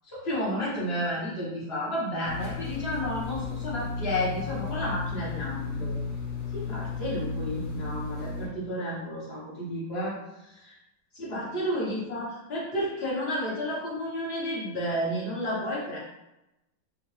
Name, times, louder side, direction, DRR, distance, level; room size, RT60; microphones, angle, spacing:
voice 1, 0.0-5.9 6.5-10.2 10.5-10.8 11.1-16.0, equal, 40° left, -7 dB, 1.1 m, -31 dB
sound 1, 2.2-8.5, left 4 dB, 65° left, 1.4 m, -34 dB
3.8 x 2.5 x 3.1 m, 0.93 s
omnidirectional pair, 2.1 m